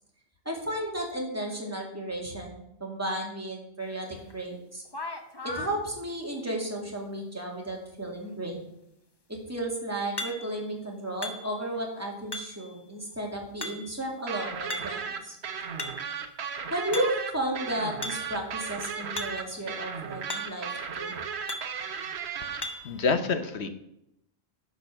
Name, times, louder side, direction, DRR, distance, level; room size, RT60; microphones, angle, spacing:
voice 1, 0.4-4.8 5.4-8.7 9.3-15.4 16.7-20.7 20.9-21.1, right 1 dB, 15° right, -1 dB, 2.3 m, -33 dB
sound 1, 4.3-4.4 4.9-5.8 10.2-10.7 11.2-11.8 12.3-12.7 13.6-14.1 14.7-15.1 15.5-16.2 16.9-17.4 18.0-18.4 19.2-19.5 19.8-19.9 20.3-20.7 21.5-21.8 22.6-23.0, left 2 dB, 25° left, 0.9 m, -37 dB
sound 2, 14.3-22.6, right 6 dB, 70° right, 1.1 m, -35 dB
voice 2, 22.4-23.7, left 4 dB, 75° left, 10 dB, 1.1 m, -28 dB
10.0 x 5.4 x 6.5 m, 0.80 s
omnidirectional pair, 1.1 m